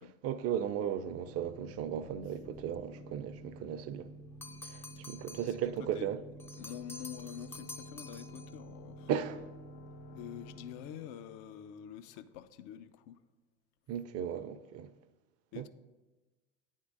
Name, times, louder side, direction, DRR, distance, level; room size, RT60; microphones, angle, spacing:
voice 1, 0.2-4.1 4.6-6.2 9.1-9.5 13.9-14.9 15.6-15.7, right 9 dB, 40° right, 0.6 m, -36 dB
sound 1, 0.9-12.5, equal, 75° left, 1.1 m, -51 dB
sound 2, 4.4-5.6 6.4-8.6, left 3 dB, 5° left, 0.4 m, -49 dB
voice 2, 6.6-9.1 10.1-13.2 15.5-15.7, left 10 dB, 55° left, 0.6 m, -46 dB
9.3 x 3.7 x 6.6 m
hypercardioid pair, 80°, 36 cm